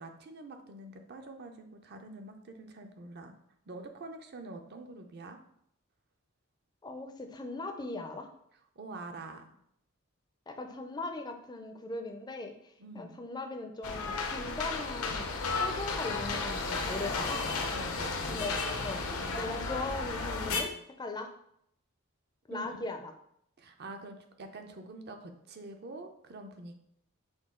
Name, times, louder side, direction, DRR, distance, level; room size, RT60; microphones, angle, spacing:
voice 1, 0.0-3.4 3.7-5.4 8.8-9.6 12.8-13.2 17.7-18.5 22.5-22.7 23.6-26.7, right 2 dB, 50° right, 6 dB, 0.5 m, -46 dB
voice 2, 6.8-8.3 10.5-17.6 18.3-18.5 18.8-19.1 19.3-21.3 22.5-23.1, left 2 dB, 20° left, 5 dB, 0.4 m, -39 dB
sound 1, 13.8-20.6, left 4 dB, 80° left, 0.6 m, -33 dB
6.1 x 2.3 x 3.6 m, 0.72 s
head